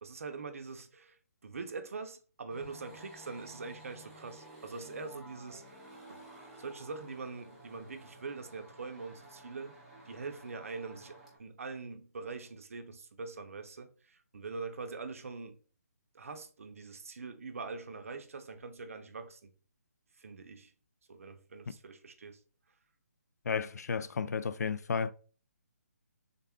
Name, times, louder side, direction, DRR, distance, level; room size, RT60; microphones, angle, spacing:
voice 1, 0.0-6.3 6.6-9.8 10.0-15.6 16.1-19.5 20.2-20.7 21.1-22.4, right 4 dB, 60° right, 0.6 m, -43 dB
sound 1, 2.5-11.4, right 1 dB, ahead, 0.5 m, -53 dB
voice 2, 23.5-25.1, left 6 dB, 80° left, 0.3 m, -33 dB
3.6 x 2.2 x 3.5 m
hypercardioid pair, 170°, 9 cm